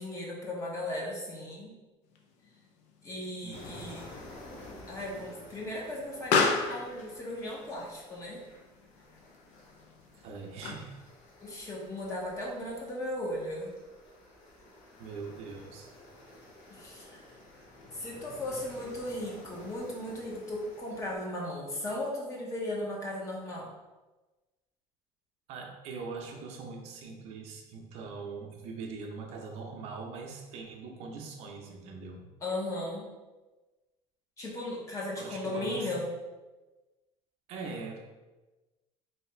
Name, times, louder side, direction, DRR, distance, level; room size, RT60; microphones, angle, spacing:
voice 1, 0.0-1.8 3.0-4.0 4.9-8.4 11.4-13.7 16.7-17.3 17.9-23.7 32.4-33.1 34.4-36.1, left 1 dB, 25° left, -2 dB, 0.8 m, -36 dB
Explosion, 2.1-11.1, left 4 dB, 60° left, 0.5 m, -35 dB
voice 2, 3.4-3.8 10.2-11.0 15.0-15.9 25.5-32.2 35.2-35.9 37.5-38.0, right 4 dB, 55° right, 2 dB, 0.6 m, -42 dB
sound 1, 3.5-21.2, left 1 dB, 85° left, 1.2 m, -52 dB
3.2 x 2.8 x 4.3 m, 1.2 s
cardioid pair, 175°, 13 cm